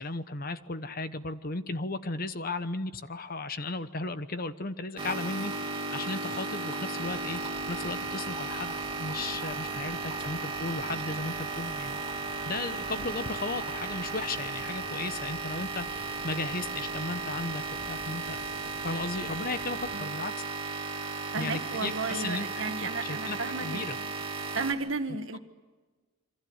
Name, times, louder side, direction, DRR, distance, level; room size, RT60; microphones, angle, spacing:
voice 1, 0.0-7.4 7.7-12.0 12.5-18.4 18.8-20.4 21.4-22.5 23.0-24.0, left 3 dB, 45° left, 11 dB, 1.1 m, -35 dB
sound 1, 5.0-24.7, right 3 dB, 25° right, 2.9 m, -35 dB
sound 2, 7.0-20.0, right 2 dB, 50° right, 2.3 m, -49 dB
voice 2, 21.3-24.1 24.5-25.4, right 3 dB, 65° right, 8 dB, 1.8 m, -35 dB
28.5 x 24.5 x 8.1 m, 1.3 s
head